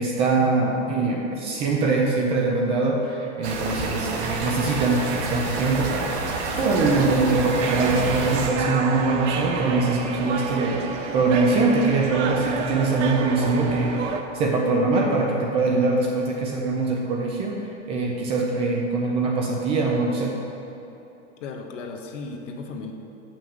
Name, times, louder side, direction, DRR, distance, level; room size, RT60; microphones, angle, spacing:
voice 1, 0.0-6.1 6.6-14.0 14.3-17.6 17.9-20.4, right 3 dB, 15° right, -1 dB, 0.4 m, -23 dB
sound 1, 3.4-8.5, right 3 dB, 65° right, 1.4 m, -28 dB
sound 2, 7.6-14.2, right 5 dB, 80° right, 0.9 m, -30 dB
voice 2, 21.4-22.9, left 4 dB, 80° left, 3 dB, 1.2 m, -35 dB
6.6 x 5.9 x 7.1 m, 3.0 s
supercardioid pair, 170°, 36 cm